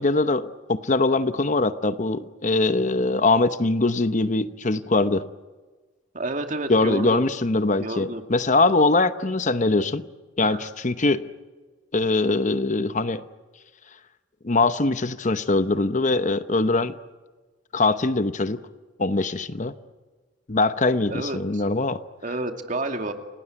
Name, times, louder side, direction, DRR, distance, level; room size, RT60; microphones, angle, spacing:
voice 1, 0.0-5.3 6.7-10.0 10.4-11.2 11.9-13.2 14.4-16.9 17.7-18.6 19.0-19.8 20.5-22.0, left 2 dB, 40° left, 12 dB, 0.9 m, -22 dB
voice 2, 6.1-7.2 7.8-8.3 10.4-10.7 21.1-21.6 22.2-23.1, right 2 dB, 45° right, 5 dB, 2.4 m, -30 dB
29.0 x 18.5 x 9.4 m, 1.3 s
head